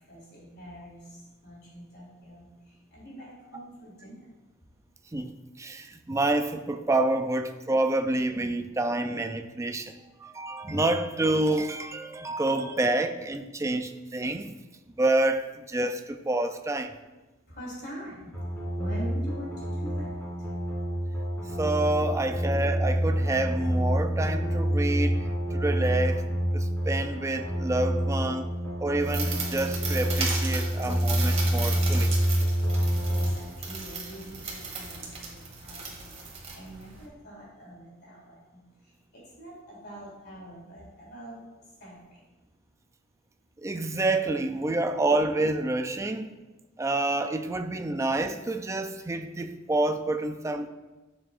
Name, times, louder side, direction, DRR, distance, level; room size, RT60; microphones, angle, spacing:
voice 1, 0.1-1.0 1.4-2.5 2.9-4.2 17.5-18.3 18.7-19.5 19.8-20.1 33.1-35.0 35.3-35.9 36.5-38.3 39.4-41.4 41.8-41.9, equal, 55° left, 3.1 m, -43 dB
voice 2, 5.6-9.9 10.2-14.5 15.0-16.9 21.6-26.2 26.5-28.5 28.8-32.1 43.6-46.4 46.8-50.7, right 2 dB, 15° right, 0.4 m, -28 dB
sound 1, 18.3-33.3, equal, 10° left, 2.9 m, -27 dB
sound 2, 29.0-37.0, right 4 dB, 35° right, 1.8 m, -36 dB
11.5 x 7.3 x 2.5 m
head